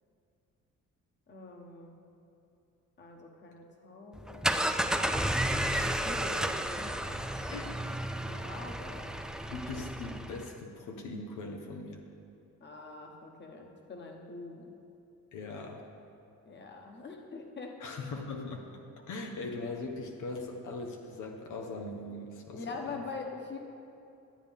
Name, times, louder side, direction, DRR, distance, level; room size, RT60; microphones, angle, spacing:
voice 1, 1.3-2.0 3.0-4.6 5.7-7.7 8.2-9.2 12.6-14.7 16.4-17.8 22.5-23.6, left 3 dB, 35° left, 2 dB, 1.2 m, -44 dB
sound 1, 4.1-10.5, right 1 dB, ahead, 0.4 m, -32 dB
voice 2, 5.7-6.0 7.5-7.7 9.5-12.0 15.3-15.9 17.8-18.8 19.1-23.0, left 3 dB, 85° left, 2 dB, 0.9 m, -40 dB
12.0 x 8.3 x 3.6 m, 2.7 s
cardioid pair, 90°, 30 cm